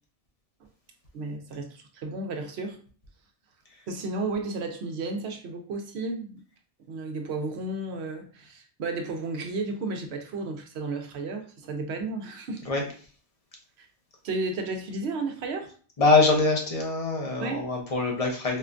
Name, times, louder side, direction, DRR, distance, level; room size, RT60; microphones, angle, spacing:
voice 1, 1.1-2.8 3.9-6.4 6.9-12.6 14.2-15.7 17.4-17.7, right 3 dB, 85° right, 4 dB, 0.9 m, -33 dB
voice 2, 16.0-18.6, left 3 dB, 35° left, 0 dB, 0.8 m, -23 dB
4.3 x 2.2 x 2.5 m, 0.42 s
omnidirectional pair, 1.1 m